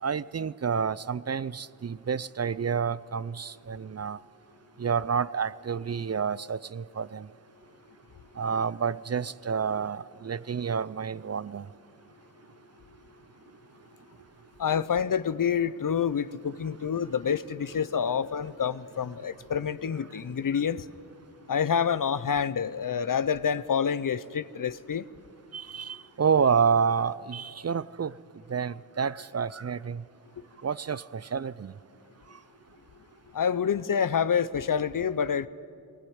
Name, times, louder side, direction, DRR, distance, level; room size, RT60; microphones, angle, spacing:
voice 1, 0.0-4.2 4.8-7.3 8.4-11.7 25.5-28.2 28.5-30.0 30.6-31.7, right 6 dB, 40° right, 0.5 m, -29 dB
voice 2, 14.6-20.9 21.5-25.1 33.3-35.5, left 7 dB, 55° left, 0.7 m, -27 dB
19.5 x 18.5 x 9.5 m
cardioid pair, 60°, 39 cm